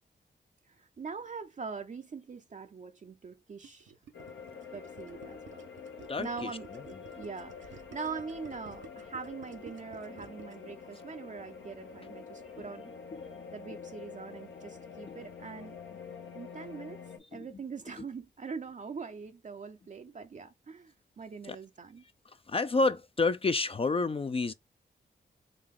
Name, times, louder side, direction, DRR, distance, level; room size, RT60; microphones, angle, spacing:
voice 1, 0.7-3.9 4.7-5.7 6.2-6.7 7.2-12.9 13.5-15.8 16.3-17.0 17.3-22.0, right 5 dB, 40° right, 0.5 m, -42 dB
Gurgling, 3.6-10.7, right 5 dB, 90° right, 0.7 m, -52 dB
sound 1, 4.1-17.2, left 5 dB, 80° left, 0.9 m, -47 dB
voice 2, 6.1-6.8 12.6-12.7 13.1-13.3 15.0-15.2 17.2-17.5 18.0-18.1 21.4-21.6 22.5-24.5, left 3 dB, 30° left, 0.4 m, -30 dB
3.8 x 2.3 x 3.5 m
cardioid pair, 50°, 19 cm